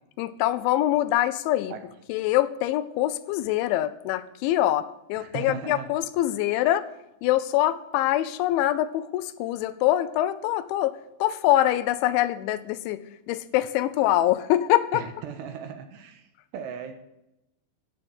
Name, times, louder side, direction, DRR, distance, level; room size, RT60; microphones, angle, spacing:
voice 1, 0.2-1.7 2.1-6.9 7.2-13.0 13.3-15.0, left 14 dB, 85° left, 14 dB, 3.1 m, -24 dB
voice 2, 5.2-5.9 14.9-16.3 16.5-16.9, right 8 dB, 75° right, 7 dB, 3.1 m, -37 dB
14.0 x 6.4 x 8.6 m, 0.89 s
omnidirectional pair, 5.3 m